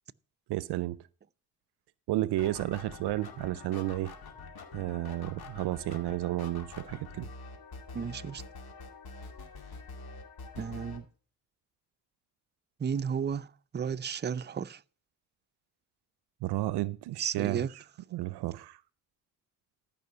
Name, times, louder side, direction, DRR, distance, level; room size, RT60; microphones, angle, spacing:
voice 1, 0.5-1.0 2.1-4.1 4.7-7.3 16.4-17.8 18.1-18.8, right 16 dB, 85° right, 0.5 m, -32 dB
sound 1, 2.3-11.0, left 4 dB, 70° left, 2.3 m, -46 dB
voice 2, 7.9-8.4 10.6-11.1 12.8-13.5 13.7-14.8 17.2-17.7, right 7 dB, 30° right, 0.5 m, -33 dB
14.0 x 5.5 x 5.5 m
cardioid pair, 60°, 38 cm